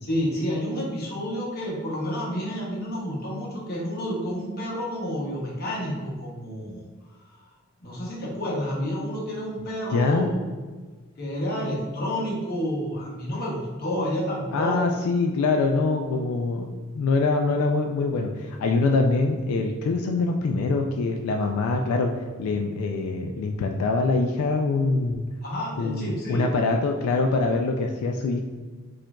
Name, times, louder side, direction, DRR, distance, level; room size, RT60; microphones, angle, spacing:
voice 1, 0.0-6.9 7.8-10.4 11.2-14.9 25.4-26.4, equal, 45° left, -4 dB, 0.8 m, -29 dB
voice 2, 9.9-10.3 14.5-22.1 22.4-25.2 25.8-28.4, left 3 dB, 85° left, 5 dB, 0.3 m, -24 dB
4.4 x 2.5 x 2.2 m, 1.4 s
head